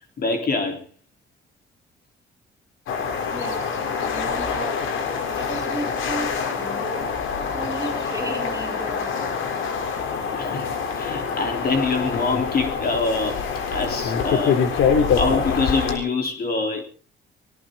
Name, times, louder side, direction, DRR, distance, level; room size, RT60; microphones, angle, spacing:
voice 1, 0.2-0.9 10.3-13.4 13.7-14.6 15.2-16.8, left 3 dB, 50° left, 3.8 m, -25 dB
sound 1, 2.9-16.0, left 6 dB, 80° left, 3.6 m, -25 dB
voice 2, 3.3-4.9 5.4-7.3 7.5-9.5, right 2 dB, 15° right, 6.7 m, -35 dB
20.0 x 18.5 x 3.8 m
cardioid pair, 90°, 20 cm